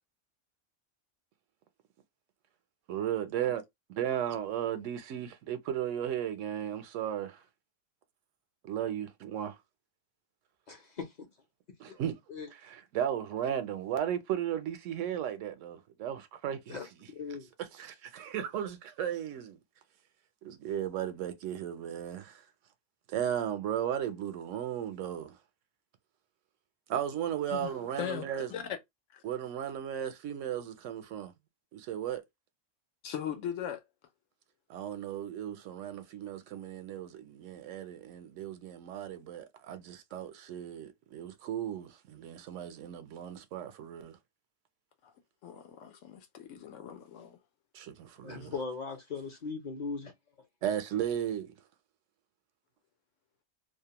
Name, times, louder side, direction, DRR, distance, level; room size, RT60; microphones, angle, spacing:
voice 1, 2.9-3.6 3.9-7.4 8.6-9.6 11.8-12.1 12.5-16.8 17.6-19.6 20.4-22.4 23.1-25.4 26.9-28.5 29.2-31.3 31.7-32.2 34.7-44.2 47.7-48.5 50.6-51.5, right 10 dB, 80° right, 0.9 m, -35 dB
voice 2, 10.7-11.1 12.3-12.5 16.7-16.8 17.1-17.5 48.2-50.1, left 4 dB, 50° left, 0.6 m, -38 dB
voice 3, 27.5-28.2 28.5-28.6 29.1-29.2 33.0-33.8 45.0-45.1 45.4-47.4, left 9 dB, 85° left, 1.0 m, -39 dB
2.5 x 2.1 x 2.8 m
omnidirectional pair, 1.3 m